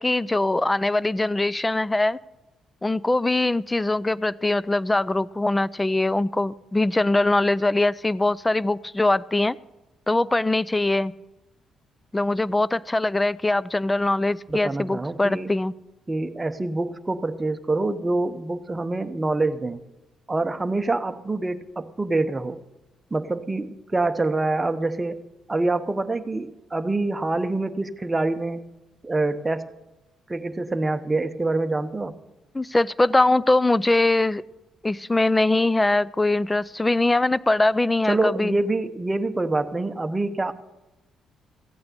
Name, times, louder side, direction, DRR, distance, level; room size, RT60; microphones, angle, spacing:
voice 1, 0.0-2.2 2.8-9.6 10.1-11.1 12.1-15.7 32.5-34.4 34.8-38.5, left 2 dB, 15° left, 20 dB, 0.4 m, -22 dB
voice 2, 14.5-15.5 16.1-19.8 20.3-22.6 23.1-28.7 29.0-29.7 30.3-32.2 38.1-40.5, right 2 dB, 20° right, 8 dB, 0.9 m, -26 dB
15.5 x 8.7 x 6.7 m, 1.0 s
cardioid pair, 90°, 0 cm